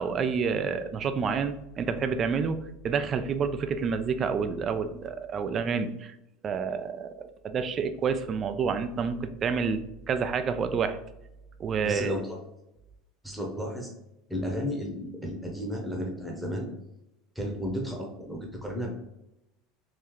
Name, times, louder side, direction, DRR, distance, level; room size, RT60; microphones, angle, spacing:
voice 1, 0.0-6.2 6.4-9.8 10.1-11.0 11.6-12.1, right 6 dB, 30° right, 10 dB, 0.4 m, -29 dB
voice 2, 11.8-12.4 13.2-13.9 14.3-16.7 17.3-18.9, equal, 5° right, 0 dB, 0.9 m, -33 dB
3.7 x 2.7 x 3.1 m, 0.88 s
supercardioid pair, 140°, 0 cm